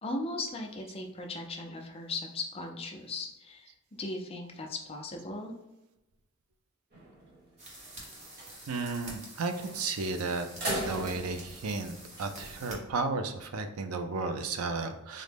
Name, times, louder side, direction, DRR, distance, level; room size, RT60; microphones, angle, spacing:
voice 1, 0.0-3.7 4.0-5.5, left 2 dB, 25° left, 2 dB, 0.5 m, -37 dB
sound 1, 6.9-7.4 7.8-7.9 8.2-8.5 9.6-10.0 10.4-12.6, right 1 dB, 50° right, 1.2 m, -38 dB
sound 2, 7.6-12.8, right 1 dB, 35° right, 0.9 m, -48 dB
voice 2, 8.7-10.5 10.8-15.2, right 3 dB, 85° right, 6 dB, 0.5 m, -33 dB
3.7 x 2.1 x 3.3 m, 0.93 s
head